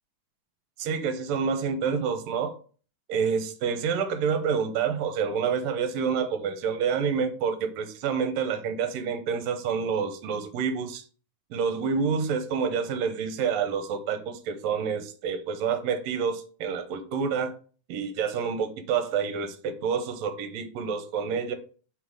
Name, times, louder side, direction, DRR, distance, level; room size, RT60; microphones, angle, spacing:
voice 1, 0.8-2.6 3.1-11.0 11.5-17.6 17.9-21.5, right 6 dB, 70° right, 8 dB, 1.9 m, -28 dB
5.8 x 4.0 x 4.8 m, 0.40 s
omnidirectional pair, 3.4 m